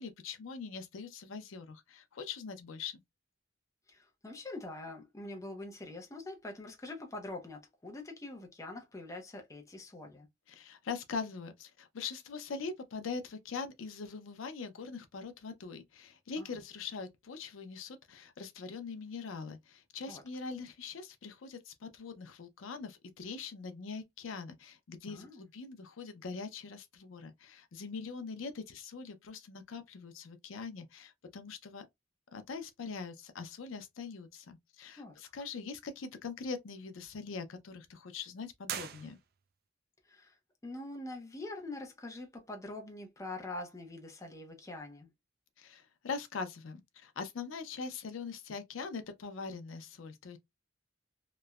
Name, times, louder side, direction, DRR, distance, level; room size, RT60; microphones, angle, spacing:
voice 1, 0.0-3.0 10.5-31.9 32.3-39.2 45.6-50.4, left 5 dB, 90° left, 0.5 m, -42 dB
voice 2, 3.9-10.3 16.4-16.5 20.1-20.2 25.1-25.4 35.0-35.1 40.0-40.4 40.6-45.1, left 2 dB, 15° left, 0.5 m, -44 dB
sound 1, 38.6-39.7, right 10 dB, 50° right, 0.3 m, -42 dB
3.0 x 2.1 x 2.3 m
head